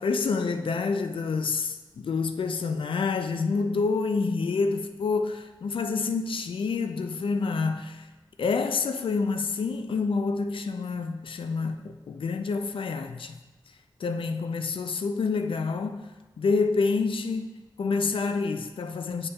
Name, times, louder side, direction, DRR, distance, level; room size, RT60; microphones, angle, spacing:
voice 1, 0.0-8.1 8.4-13.4 14.0-17.5 17.8-19.3, left 4 dB, 75° left, 0.4 m, -28 dB
9.7 x 5.3 x 2.3 m
wide cardioid pair, 105°, 9 cm